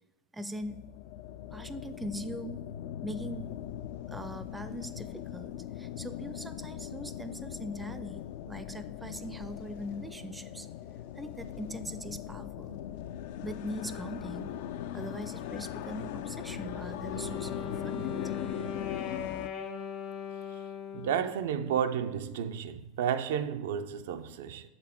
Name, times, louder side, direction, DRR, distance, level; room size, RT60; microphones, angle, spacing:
voice 1, 0.3-0.8 1.5-2.6 3.0-3.6 4.1-8.2 8.5-10.7 11.2-12.8 13.4-14.5 14.9-17.6 17.8-18.2, equal, 10° right, 0.4 m, -41 dB
sound 1, 0.5-19.5, left 11 dB, 75° left, 0.3 m, -40 dB
Wind instrument woodwind instrument, 16.8-21.4, left 7 dB, 50° left, 0.7 m, -39 dB
voice 2, 20.9-24.6, right 8 dB, 80° right, 0.4 m, -32 dB
6.8 x 4.2 x 4.3 m
supercardioid pair, 110°, 0 cm